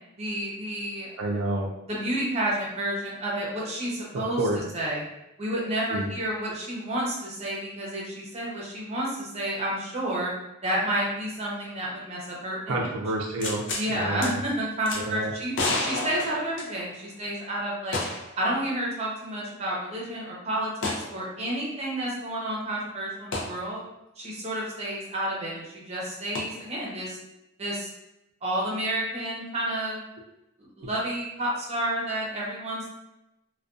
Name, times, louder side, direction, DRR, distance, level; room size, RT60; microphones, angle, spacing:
voice 1, 0.2-1.1 1.9-4.4 4.7-5.0 5.4-10.3 10.6-12.9 13.8-15.5 15.8-18.0 18.4-23.8 24.2-27.2 27.6-27.9 28.4-30.0 30.6-32.9, right 1 dB, 30° right, -4 dB, 0.7 m, -30 dB
voice 2, 1.2-1.7 4.3-4.6 5.9-6.1 12.7-13.6 13.9-14.4 14.9-15.3, right 2 dB, 65° right, -1 dB, 0.4 m, -28 dB
sound 1, 13.4-13.9 14.2-14.3 14.9-15.0 15.5-17.1 17.9-18.4 18.7-18.8 20.8-21.1 23.3-23.5 26.3-26.4, left 2 dB, 60° left, 0.5 m, -30 dB
2.4 x 2.2 x 2.4 m, 0.88 s
head